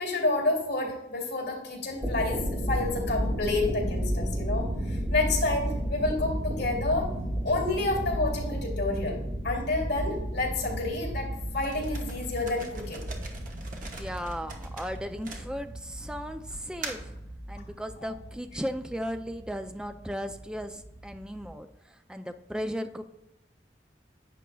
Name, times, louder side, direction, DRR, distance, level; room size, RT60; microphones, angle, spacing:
voice 1, 0.0-7.1 7.4-9.2 9.4-13.1, left 2 dB, 75° left, 0 dB, 2.6 m, -29 dB
sound 1, 1.8-21.5, equal, 30° right, 2.4 m, -34 dB
sound 2, 11.6-15.9 16.5-17.2, right 2 dB, 45° right, 1.1 m, -41 dB
voice 2, 13.8-17.2 17.5-23.0, equal, 5° right, 8 dB, 0.4 m, -36 dB
11.0 x 8.2 x 2.3 m, 0.89 s
head